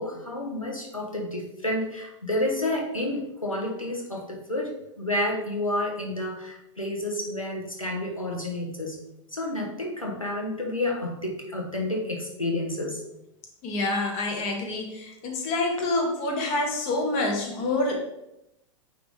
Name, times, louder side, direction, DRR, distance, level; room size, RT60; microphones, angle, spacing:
voice 1, 0.0-9.0 9.3-13.0, left 1 dB, 90° left, 0 dB, 1.2 m, -30 dB
voice 2, 13.6-18.0, left 2 dB, 40° left, 2 dB, 1.4 m, -27 dB
9.4 x 3.3 x 3.7 m, 0.86 s
figure-of-eight pair, 95°, 17 cm